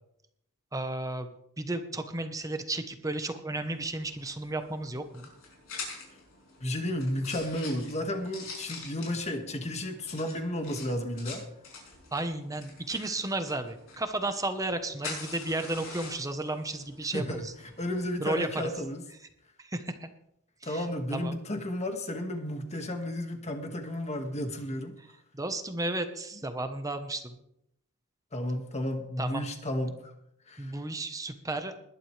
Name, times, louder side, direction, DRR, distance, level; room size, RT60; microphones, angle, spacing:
voice 1, 0.7-5.3 12.1-17.5 18.2-18.5 19.7-20.1 20.6-20.8 21.1-21.4 25.3-27.4 29.2-29.4 30.6-31.8, right 2 dB, 15° right, 8 dB, 1.0 m, -33 dB
sound 1, 3.5-18.8, left 4 dB, 65° left, 5.8 m, -46 dB
voice 2, 6.6-11.4 17.1-19.1 20.6-25.0 28.3-30.1 30.5-30.8, left 1 dB, 30° left, 5 dB, 1.8 m, -33 dB
21.0 x 11.0 x 3.3 m, 0.77 s
head